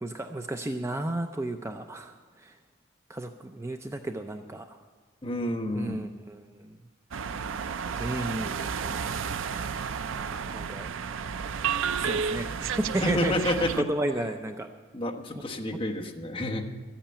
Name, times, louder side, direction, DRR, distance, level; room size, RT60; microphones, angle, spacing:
voice 1, 0.0-2.6 3.1-4.8 5.7-6.8 8.0-10.9 12.0-13.3 13.9-14.7, right 1 dB, 15° right, 6 dB, 0.5 m, -34 dB
voice 2, 5.2-5.9 13.0-13.8 14.9-16.7, left 1 dB, 25° left, 1 dB, 1.1 m, -29 dB
sound 1, 7.1-13.8, right 6 dB, 65° right, 0.4 m, -31 dB
13.0 x 8.9 x 8.7 m, 1.4 s
head